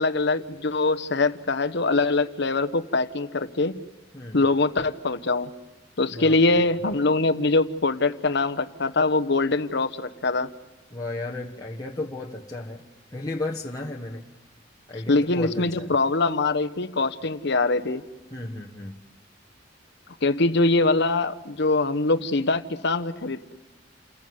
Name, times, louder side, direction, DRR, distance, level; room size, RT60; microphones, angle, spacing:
voice 1, 0.0-3.8 4.3-5.5 6.0-10.5 15.1-18.1 20.2-23.5, left 3 dB, 65° left, 11 dB, 1.0 m, -23 dB
voice 2, 6.1-6.8 10.9-12.8 13.1-14.3 14.9-15.9 18.3-19.0, left 2 dB, 20° left, -2 dB, 1.3 m, -34 dB
29.5 x 15.0 x 9.5 m, 1.2 s
head